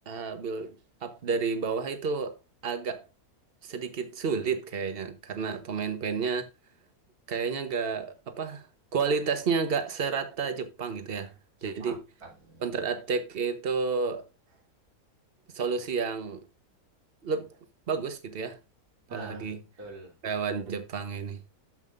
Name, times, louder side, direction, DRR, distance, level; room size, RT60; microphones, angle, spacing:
voice 1, 0.1-2.4 2.6-3.1 3.6-6.5 7.3-8.7 8.9-11.3 11.6-12.0 12.6-14.3 15.5-16.5 17.2-17.5 17.9-18.6 19.1-19.6 20.2-21.4, right 5 dB, 40° right, 1.2 m, -31 dB
voice 2, 11.6-12.8 19.1-20.2, right 2 dB, 75° right, 3.5 m, -46 dB
13.5 x 5.6 x 2.5 m
omnidirectional pair, 1.6 m